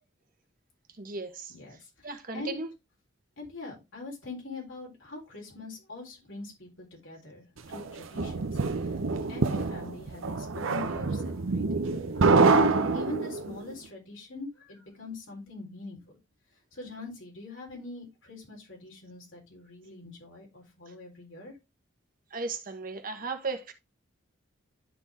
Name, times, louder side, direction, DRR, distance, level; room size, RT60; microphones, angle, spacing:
voice 1, 1.0-2.7 20.9-21.0 22.3-23.7, right 3 dB, 45° right, 1.2 m, -36 dB
voice 2, 1.5-2.6 3.4-9.0 9.3-11.9 12.4-16.2 16.7-21.6, left 3 dB, 75° left, 4.1 m, -42 dB
sound 1, 7.7-13.6, right 4 dB, 80° right, 0.6 m, -26 dB
11.5 x 4.0 x 3.6 m
head